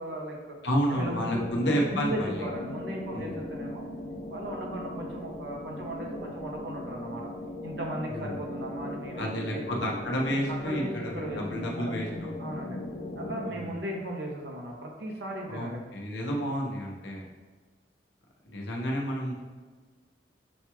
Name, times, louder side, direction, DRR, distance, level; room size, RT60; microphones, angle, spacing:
voice 1, 0.0-0.6 0.9-3.9 4.3-7.3 7.6-9.2 9.5-9.8 10.6-11.9 12.4-12.8 13.2-15.8, right 1 dB, 75° right, 0 dB, 0.8 m, -37 dB
voice 2, 0.6-2.5 3.1-3.4 8.1-8.4 9.2-12.3 13.5-13.8 15.5-17.3 18.4-19.3, equal, 85° left, 0 dB, 0.8 m, -30 dB
sound 1, 0.9-13.5, left 1 dB, 40° left, 0.4 m, -38 dB
6.3 x 2.3 x 3.0 m, 1.4 s
head